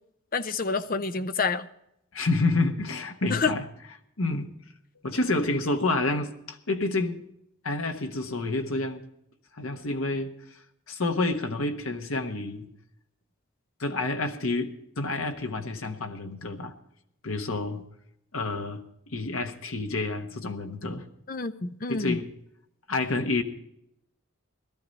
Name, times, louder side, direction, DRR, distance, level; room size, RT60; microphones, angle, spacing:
voice 1, 0.3-1.7 3.3-3.5 21.3-22.2, left 4 dB, 40° left, 11 dB, 0.6 m, -28 dB
voice 2, 2.1-3.6 4.2-4.5 5.0-7.2 7.6-9.0 9.5-10.3 10.9-12.7 13.8-16.7 17.2-17.8 18.3-21.1 21.9-22.2 22.9-23.4, left 2 dB, 80° left, 6 dB, 1.3 m, -29 dB
17.5 x 13.0 x 4.1 m, 0.77 s
head